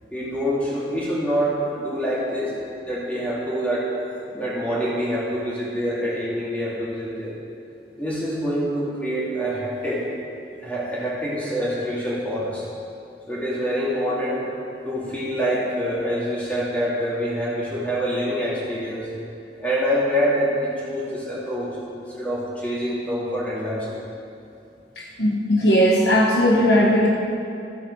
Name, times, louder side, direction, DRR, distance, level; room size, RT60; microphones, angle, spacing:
voice 1, 0.1-2.5 2.8-3.9 4.3-7.4 8.0-10.1 10.6-12.7 13.3-14.5 14.8-19.1 19.6-24.0, equal, 10° left, -7 dB, 2.6 m, -26 dB
voice 2, 25.2-27.1, equal, 75° left, -3 dB, 1.3 m, -17 dB
14.0 x 7.9 x 4.8 m, 2.5 s
head